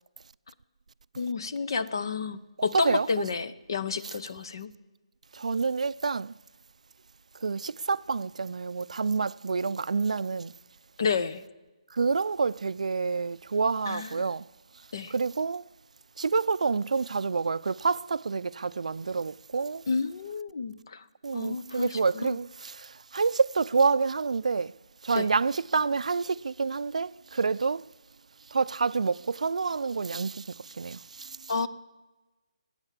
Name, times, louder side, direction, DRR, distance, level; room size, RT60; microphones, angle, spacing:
voice 1, 1.2-4.7 11.0-11.4 13.9-14.1 14.9-15.1 19.9-21.0 21.3-22.4 25.1-25.3 31.5-31.7, left 5 dB, 40° left, 0.7 m, -30 dB
voice 2, 2.7-3.2 4.0-4.2 5.3-6.3 7.3-10.6 11.9-14.5 15.1-15.6 16.2-19.8 21.2-24.7 25.0-27.8 28.5-31.5, right 4 dB, 80° right, 0.4 m, -28 dB
20.5 x 8.8 x 7.4 m
hypercardioid pair, 180°, 4 cm